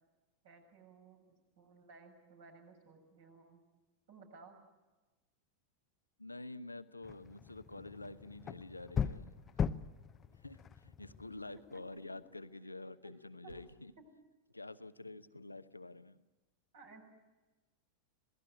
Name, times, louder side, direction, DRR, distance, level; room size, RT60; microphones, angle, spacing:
voice 1, 0.4-1.2 1.6-3.6 4.1-4.6 11.7-11.8 13.4-13.5 14.0-14.1 16.7-17.0, right 4 dB, 55° right, 3 dB, 6.8 m, -57 dB
voice 2, 6.2-9.7 10.3-13.9 14.5-16.2, left 2 dB, 85° left, 12 dB, 0.9 m, -48 dB
sound 1, 7.0-11.9, left 7 dB, 25° left, 0.8 m, -40 dB
Dog, 8.8-10.4 12.0-13.8, right 2 dB, 70° right, 2.5 m, -63 dB
27.0 x 18.0 x 9.3 m, 1.2 s
figure-of-eight pair, 90°, 0 cm